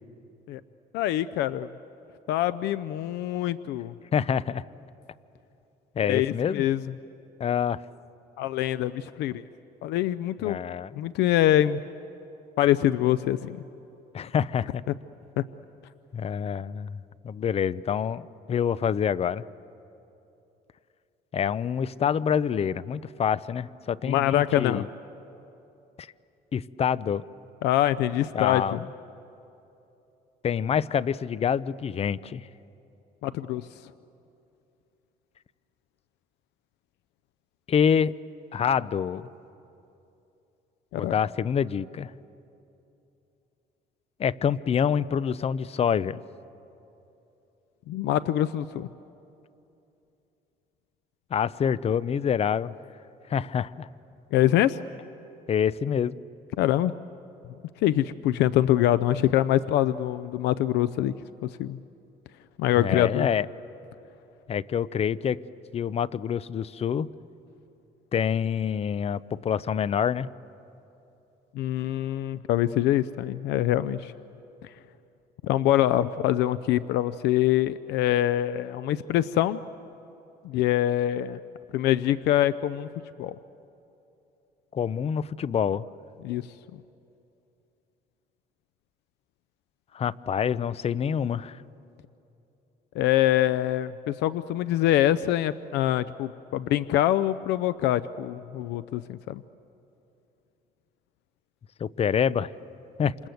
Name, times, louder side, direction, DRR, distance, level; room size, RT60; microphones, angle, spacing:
voice 1, 0.9-1.7 2.3-3.9 6.0-6.8 8.4-9.4 9.8-10.6 10.9-11.8 12.6-13.6 15.4-15.5 24.0-24.8 27.6-28.8 33.2-33.7 40.9-41.1 47.9-48.9 54.3-54.8 56.6-56.9 57.8-61.1 61.4-61.8 62.6-63.3 71.5-74.1 74.6-74.7 75.4-79.6 80.4-81.4 81.7-82.9 83.2-83.4 86.2-86.4 93.0-99.4, left 13 dB, 85° left, 15 dB, 0.6 m, -24 dB
voice 2, 4.1-4.6 6.0-6.7 7.4-7.8 10.4-11.0 14.1-14.8 16.1-19.4 21.3-24.9 26.0-26.1 26.5-27.2 28.3-28.9 30.4-32.5 37.7-38.1 38.5-39.3 40.9-42.1 44.2-46.2 51.3-52.7 53.3-53.9 55.5-56.2 62.8-63.5 64.5-65.4 65.7-67.1 68.1-70.3 84.7-85.9 89.9-91.6 101.8-102.5 103.0-103.1, left 8 dB, 35° left, 18 dB, 0.6 m, -26 dB
27.5 x 27.5 x 7.9 m, 2.9 s
cardioid pair, 110°, 17 cm